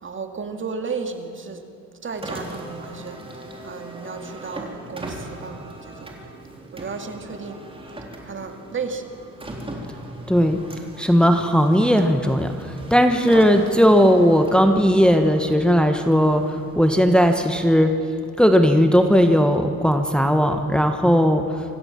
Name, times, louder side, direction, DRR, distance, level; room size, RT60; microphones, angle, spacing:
voice 1, 0.0-1.7 2.0-6.1 6.7-7.6 8.2-9.1, right 5 dB, 40° right, 5 dB, 2.2 m, -33 dB
Car, 2.1-17.5, right 1 dB, 20° right, 3.8 m, -39 dB
voice 2, 10.3-10.6 11.0-18.0 18.4-21.6, equal, 5° left, 5 dB, 1.3 m, -17 dB
25.5 x 15.5 x 7.5 m, 2.8 s
cardioid pair, 90°, 30 cm